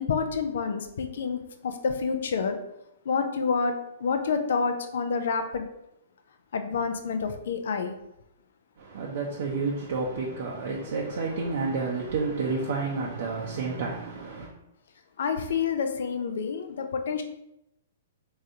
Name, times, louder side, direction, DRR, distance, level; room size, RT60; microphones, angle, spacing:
voice 1, 0.0-2.6 3.0-3.7 4.0-5.7 6.5-7.9 15.2-17.2, left 5 dB, 60° left, 0.4 m, -28 dB
voice 2, 8.8-14.5, right 4 dB, 55° right, 0.6 m, -30 dB
3.6 x 3.2 x 2.7 m
figure-of-eight pair, 115°, 0 cm